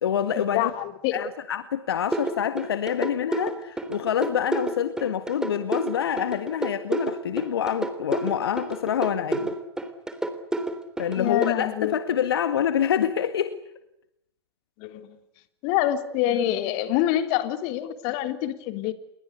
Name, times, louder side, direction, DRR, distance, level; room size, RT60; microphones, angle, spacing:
voice 1, 0.0-0.7 1.1-9.6 11.0-13.6, left 9 dB, 70° left, 11 dB, 1.8 m, -26 dB
voice 2, 0.5-1.2 11.2-11.9 14.8-15.1 15.6-18.9, left 13 dB, 45° left, 9 dB, 3.4 m, -26 dB
sound 1, 2.1-11.5, right 2 dB, 5° right, 3.4 m, -29 dB
29.0 x 23.0 x 8.3 m, 0.81 s
hypercardioid pair, 110°, 13 cm